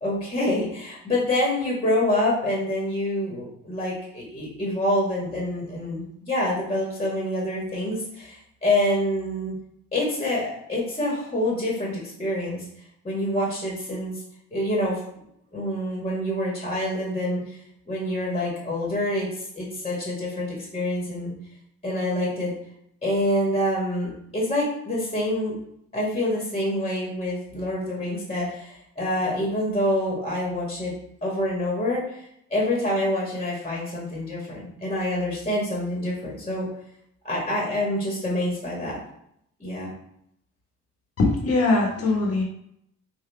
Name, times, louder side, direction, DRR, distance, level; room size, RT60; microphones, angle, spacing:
voice 1, 0.0-9.5 9.9-12.6 13.0-14.2 14.5-15.0 15.5-17.4 17.9-21.3 21.8-22.5 23.0-25.5 25.9-30.9 31.2-36.7 37.2-39.0 39.6-39.9, left 1 dB, 20° left, -4 dB, 1.5 m, -26 dB
voice 2, 41.2-42.4, left 3 dB, 50° left, -1 dB, 1.3 m, -21 dB
3.9 x 2.7 x 3.4 m, 0.74 s
cardioid pair, 90°, 30 cm